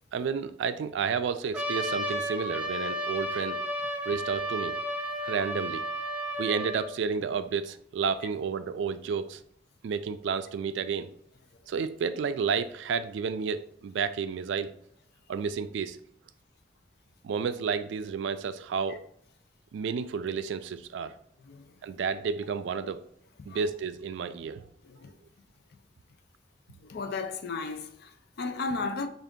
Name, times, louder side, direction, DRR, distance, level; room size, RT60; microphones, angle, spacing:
voice 1, 0.1-3.6 4.1-4.8 5.2-5.8 6.4-9.4 9.8-11.1 11.7-14.7 15.3-16.0 17.2-19.0 19.7-21.1 21.8-23.0 23.5-24.6, right 6 dB, 70° right, 0.3 m, -31 dB
Trumpet, 1.5-6.9, equal, 5° right, 0.5 m, -32 dB
voice 2, 21.4-21.8 23.5-23.6 24.8-25.1 26.8-29.1, left 3 dB, 60° left, 0.4 m, -35 dB
3.7 x 2.5 x 3.6 m
head